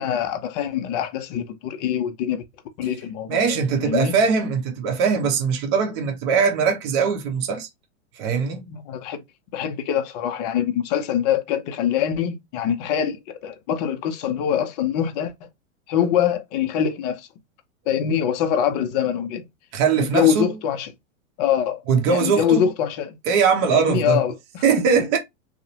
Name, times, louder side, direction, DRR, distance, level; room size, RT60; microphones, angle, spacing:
voice 1, 0.0-2.4 2.8-3.6 3.8-4.1 8.7-9.2 9.5-15.5 15.9-17.3 17.9-19.5 20.0-20.9 21.4-23.2 23.7-24.8, left 9 dB, 30° left, 0.4 m, -24 dB
voice 2, 3.3-7.7 8.2-8.7 19.7-20.5 21.9-22.7 23.3-24.2 24.6-25.2, right 6 dB, 45° right, 0.8 m, -21 dB
2.7 x 2.1 x 2.7 m
hypercardioid pair, 120°, 42 cm